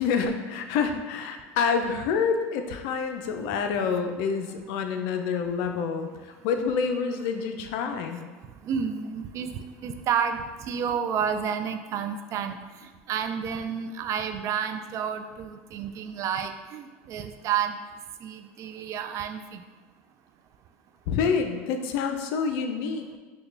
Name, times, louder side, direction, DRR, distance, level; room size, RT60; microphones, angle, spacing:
voice 1, 0.0-8.2 21.1-23.2, left 5 dB, 70° left, 6 dB, 0.4 m, -27 dB
voice 2, 8.7-9.5 9.8-12.6 13.1-17.8 18.2-19.6, right 7 dB, 50° right, 8 dB, 0.3 m, -30 dB
4.7 x 2.2 x 3.3 m, 1.3 s
supercardioid pair, 100°, 7 cm